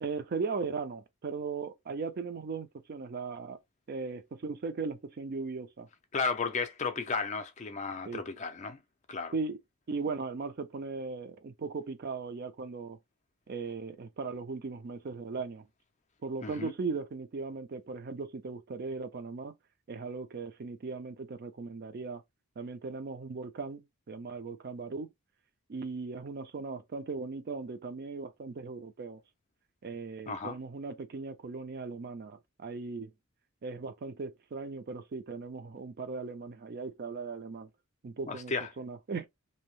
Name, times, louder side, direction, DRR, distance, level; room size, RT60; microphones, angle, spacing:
voice 1, 0.0-3.6 3.9-5.9 8.1-8.2 9.3-9.6 9.9-13.0 13.5-15.6 16.2-19.5 19.9-22.2 22.6-25.1 25.7-29.2 29.8-33.1 33.6-37.7 38.0-39.3, right 4 dB, 45° right, 0.4 m, -38 dB
voice 2, 6.1-8.8 9.1-9.3 16.4-16.7 30.3-30.5 38.3-38.7, left 4 dB, 35° left, 0.4 m, -34 dB
2.7 x 2.0 x 2.9 m
head